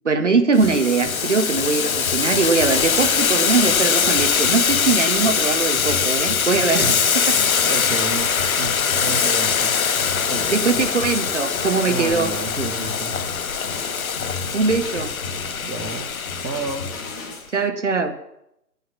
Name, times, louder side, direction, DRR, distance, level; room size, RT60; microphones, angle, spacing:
voice 1, 0.0-6.9 7.3-7.4 10.5-12.3 14.5-15.1 17.5-18.2, right 4 dB, 45° right, 9 dB, 1.1 m, -21 dB
Boiling, 0.6-17.3, left 6 dB, 55° left, 0.6 m, -22 dB
sound 1, 0.6-17.4, left 3 dB, 10° left, 1.1 m, -35 dB
voice 2, 6.6-7.0 7.3-8.3 8.6-9.8 10.3-10.7 11.9-13.2 15.6-16.1 16.4-16.9, right 3 dB, 85° right, 1 dB, 1.7 m, -31 dB
9.7 x 9.4 x 7.2 m, 0.81 s
figure-of-eight pair, 150°, 50 cm